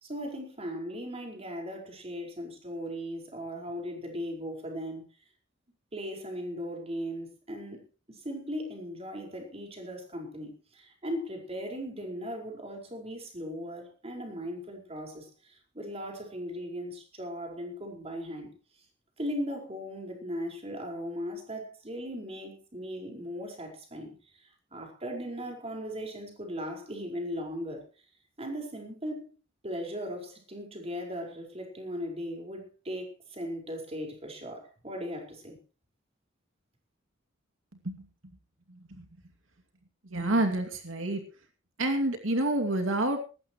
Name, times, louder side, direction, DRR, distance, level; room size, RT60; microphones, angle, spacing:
voice 1, 0.0-5.1 5.9-7.8 8.1-18.5 19.2-24.1 24.7-27.8 28.4-29.3 29.6-35.6, equal, 30° right, 1 dB, 5.0 m, -38 dB
voice 2, 38.7-39.1 40.0-41.2 41.8-43.2, right 1 dB, 85° right, 5 dB, 2.5 m, -28 dB
19.5 x 15.5 x 3.1 m, 0.35 s
head